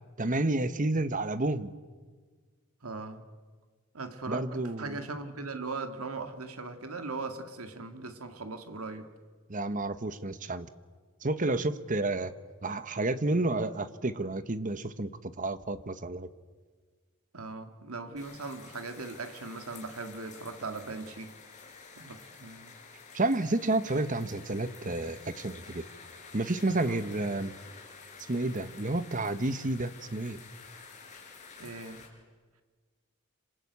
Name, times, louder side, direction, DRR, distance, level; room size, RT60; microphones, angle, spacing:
voice 1, 0.2-1.7 4.3-5.0 9.5-10.7 11.2-12.3 12.6-16.3 23.1-25.8 26.3-27.5 28.3-30.4, right 2 dB, 35° right, 12 dB, 1.1 m, -30 dB
voice 2, 2.8-3.2 3.9-9.1 17.3-21.3 22.0-22.7 26.8-27.0 31.6-32.0, right 3 dB, 85° right, 7 dB, 2.2 m, -39 dB
sound 1, 18.2-32.1, left 5 dB, 35° left, 5.2 m, -50 dB
27.0 x 26.5 x 8.4 m, 1.5 s
head